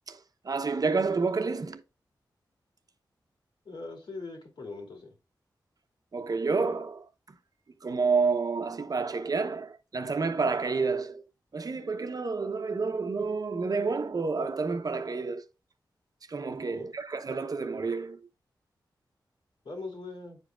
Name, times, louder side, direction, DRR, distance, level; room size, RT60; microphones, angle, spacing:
voice 1, 0.4-1.8 6.1-7.4 7.8-11.2 11.5-15.5 16.3-18.3, right 4 dB, 50° right, 0.8 m, -29 dB
voice 2, 3.6-5.1 16.7-16.9 19.6-20.4, left 3 dB, 70° left, 2.8 m, -41 dB
9.5 x 4.9 x 2.4 m
cardioid pair, 55°, 8 cm